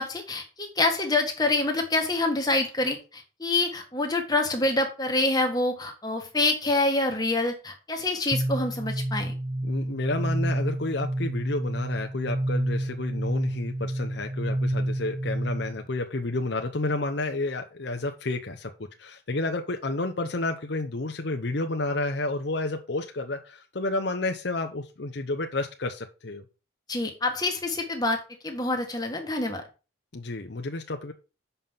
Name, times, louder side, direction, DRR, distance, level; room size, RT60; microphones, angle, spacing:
voice 1, 0.0-9.3 26.9-29.6, left 2 dB, 20° left, 3 dB, 1.7 m, -26 dB
sound 1, 8.3-15.9, right 1 dB, 20° right, 0.4 m, -29 dB
voice 2, 9.6-18.7 19.0-26.4 30.1-31.1, left 2 dB, 60° left, 4 dB, 0.8 m, -30 dB
7.2 x 5.5 x 5.7 m, 0.32 s
head